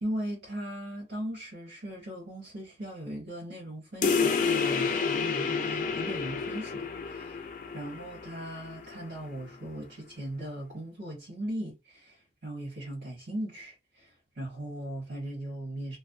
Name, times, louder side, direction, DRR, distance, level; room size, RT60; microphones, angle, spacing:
voice 1, 0.0-7.5 7.7-16.0, right 1 dB, 85° right, 1.1 m, -38 dB
sound 1, 4.0-9.1, left 5 dB, 45° left, 0.3 m, -30 dB
2.5 x 2.0 x 2.5 m
head